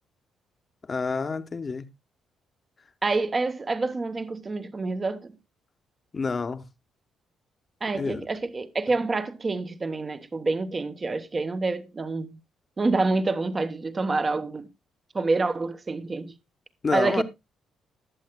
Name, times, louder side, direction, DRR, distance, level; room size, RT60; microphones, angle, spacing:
voice 1, 0.8-1.9 6.1-6.7 7.9-8.3 16.8-17.2, left 4 dB, 35° left, 1.0 m, -28 dB
voice 2, 3.0-5.3 7.8-12.4 12.8-14.7 15.1-16.3 16.9-17.2, right 3 dB, 30° right, 1.0 m, -27 dB
20.0 x 7.4 x 2.2 m
cardioid pair, 90°, 0 cm